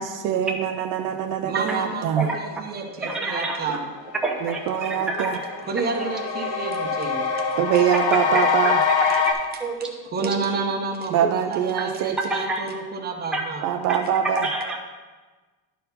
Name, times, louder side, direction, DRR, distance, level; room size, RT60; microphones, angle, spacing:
voice 1, 0.0-2.3 4.4-5.4 7.6-8.8 11.1-12.2 13.6-14.5, right 9 dB, 55° right, 5 dB, 0.6 m, -24 dB
voice 2, 1.4-3.8 5.7-7.4 10.1-13.7, right 4 dB, 25° right, 3 dB, 0.9 m, -30 dB
voice 3, 3.0-3.6 4.2-5.4 6.0-6.1 6.4-6.7 8.3-9.3 9.6-10.3 11.2-11.3 12.3-12.6 13.3-13.4 14.4-14.8, right 2 dB, ahead, -1 dB, 0.7 m, -28 dB
sound 1, 3.5-3.6 4.0-9.3, left 6 dB, 90° left, 1.4 m, -25 dB
11.5 x 4.5 x 5.4 m, 1.3 s
cardioid pair, 170°, 39 cm